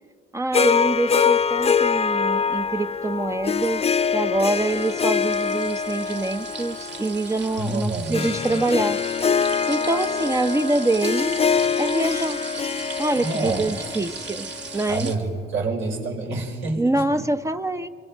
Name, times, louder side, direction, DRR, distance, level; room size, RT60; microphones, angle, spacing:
voice 1, 0.3-3.8 4.1-9.0 9.7-11.4 11.8-12.4 13.0-14.5 14.7-15.1 16.8-17.9, right 2 dB, 15° right, 9 dB, 0.6 m, -25 dB
Harp, 0.5-14.9, left 6 dB, 30° left, 0.6 m, -24 dB
sound 1, 4.4-15.2, right 5 dB, 60° right, 2.1 m, -37 dB
voice 2, 7.6-8.6 13.1-13.9 14.9-17.3, right 2 dB, 75° right, 0 dB, 4.1 m, -28 dB
27.5 x 23.5 x 4.5 m, 2.2 s
cardioid pair, 90°, 20 cm